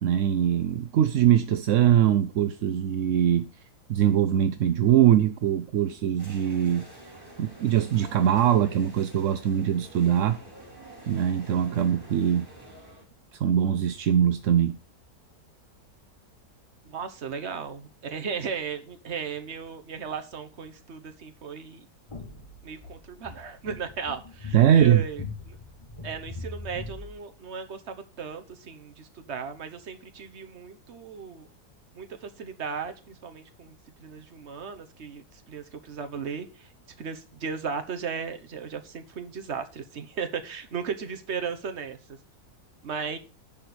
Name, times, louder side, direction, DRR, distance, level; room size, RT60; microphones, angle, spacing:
voice 1, 0.0-3.5 3.9-6.9 7.4-10.4 11.1-12.5 13.3-14.8 24.5-25.0, right 10 dB, 65° right, 0.9 m, -22 dB
sound 1, 6.2-13.0, right 1 dB, 15° right, 2.8 m, -47 dB
voice 2, 16.8-21.9 22.6-25.6 26.0-31.5 31.9-36.7 37.0-42.0 42.8-43.2, right 6 dB, 50° right, 1.3 m, -36 dB
sound 2, 22.1-27.1, left 4 dB, 20° left, 1.3 m, -40 dB
10.5 x 4.4 x 6.7 m
omnidirectional pair, 1.7 m